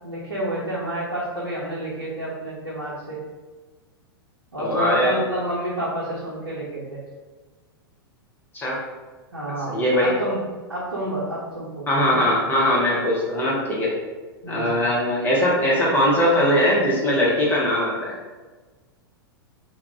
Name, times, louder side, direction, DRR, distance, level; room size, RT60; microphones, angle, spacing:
voice 1, 0.0-3.2 4.5-7.0 9.3-10.4 10.7-12.0 14.4-14.8, right 1 dB, 80° right, -7 dB, 0.7 m, -29 dB
voice 2, 4.6-5.1 8.5-8.8 9.7-10.1 11.9-13.9 14.5-18.1, left 1 dB, 15° left, -5 dB, 0.6 m, -20 dB
2.3 x 2.0 x 3.4 m, 1.3 s
figure-of-eight pair, 100°, 13 cm